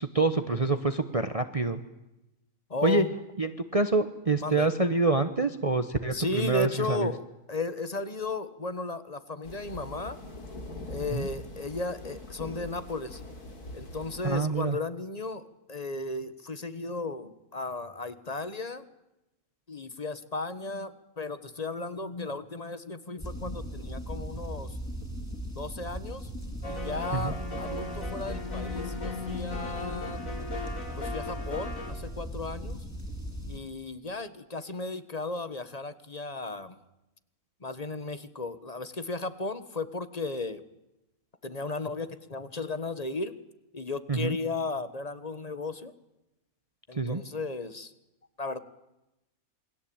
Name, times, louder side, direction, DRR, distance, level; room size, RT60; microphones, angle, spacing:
voice 1, 0.0-1.8 2.8-3.0 3.4-7.1 11.1-11.3 14.2-14.8 27.1-27.3 44.1-44.4 46.9-47.2, right 3 dB, 25° right, 9 dB, 1.0 m, -26 dB
voice 2, 2.7-3.1 4.4-4.7 6.1-10.2 10.9-13.2 13.7-15.4 15.7-18.8 19.7-24.8 25.6-26.3 26.7-30.2 31.0-32.8 33.5-36.8 37.6-40.6 41.4-43.3 43.7-45.9 46.9-47.9 48.4-48.6, left 3 dB, 25° left, 12 dB, 1.4 m, -35 dB
sound 1, 9.4-14.4, left 1 dB, 90° left, 3.8 m, -42 dB
sound 2, 23.2-33.6, equal, 10° left, 3.8 m, -38 dB
sound 3, 26.6-31.9, left 3 dB, 60° left, 4.2 m, -37 dB
28.0 x 21.0 x 8.8 m, 0.95 s
omnidirectional pair, 1.6 m